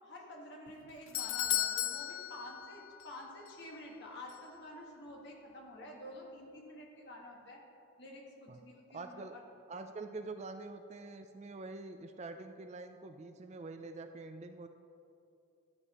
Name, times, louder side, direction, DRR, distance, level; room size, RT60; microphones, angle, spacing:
voice 1, 0.0-7.6 8.0-9.4, left 1 dB, 50° left, -1 dB, 1.6 m, -49 dB
Doorbell, 0.7-3.2 3.5-3.6 4.3-4.4, left 12 dB, 75° left, 0.4 m, -35 dB
voice 2, 8.9-9.4 9.7-14.7, right 3 dB, 30° right, 7 dB, 0.3 m, -45 dB
13.5 x 8.4 x 3.0 m, 2.7 s
head